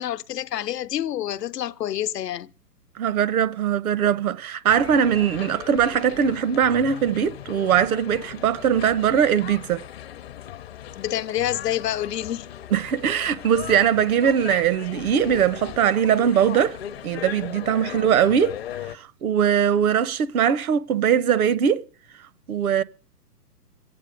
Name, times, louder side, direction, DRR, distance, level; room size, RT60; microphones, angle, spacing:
voice 1, 0.0-2.5 10.9-12.5 22.6-22.8, left 12 dB, 75° left, 0.8 m, -28 dB
voice 2, 3.0-9.8 12.7-16.8 17.0-18.6 18.9-21.8 22.5-22.8, right 8 dB, 60° right, 0.8 m, -21 dB
sound 1, 4.7-19.0, left 11 dB, 40° left, 0.6 m, -38 dB
22.5 x 8.7 x 5.0 m
hypercardioid pair, 150°, 48 cm